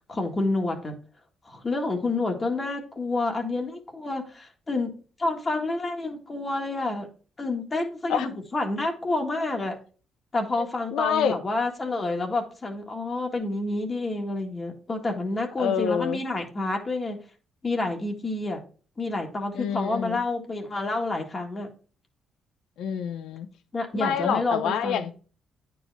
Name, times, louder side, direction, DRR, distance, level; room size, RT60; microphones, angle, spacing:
voice 1, 0.1-0.9 1.4-7.1 7.4-9.7 10.3-17.2 17.6-18.6 19.0-21.7 23.7-25.1, left 2 dB, 30° left, 1.6 m, -29 dB
voice 2, 10.9-11.4 15.6-16.2 19.5-20.2 22.8-23.5 23.9-25.1, left 8 dB, 80° left, 0.8 m, -26 dB
9.2 x 4.8 x 3.4 m
cardioid pair, 90°, 0 cm